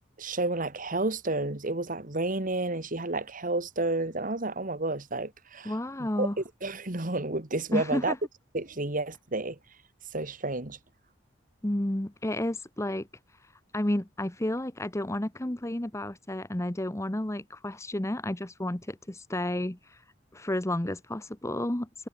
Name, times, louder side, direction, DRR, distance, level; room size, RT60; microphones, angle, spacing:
voice 1, 0.2-5.7 6.2-8.1 8.5-9.6 10.1-10.8, right 2 dB, 45° right, 2.1 m, -31 dB
voice 2, 5.6-6.4 7.7-8.2 11.6-13.1 13.7-20.0 20.3-22.1, left 1 dB, 15° left, 1.0 m, -31 dB
head